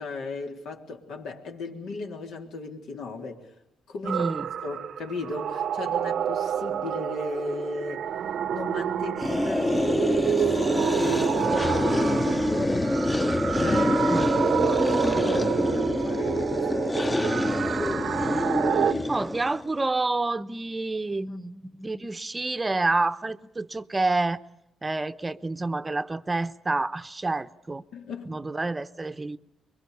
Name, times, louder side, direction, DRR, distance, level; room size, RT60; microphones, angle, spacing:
voice 1, 0.0-3.5 3.9-4.3 4.6-8.1 8.5-12.8 13.6-14.3 14.6-17.3 17.8-18.3 18.9-19.1 21.3-21.4 27.9-28.4, left 3 dB, 80° left, 3.5 m, -36 dB
voice 2, 4.0-4.5 14.1-14.2 19.1-24.4 24.8-27.8 28.3-29.4, right 2 dB, 20° right, 0.8 m, -28 dB
sound 1, 4.0-18.9, right 9 dB, 65° right, 0.8 m, -29 dB
sound 2, 9.2-19.7, left 1 dB, 15° left, 0.9 m, -25 dB
25.5 x 23.0 x 6.9 m
cardioid pair, 90°, 0 cm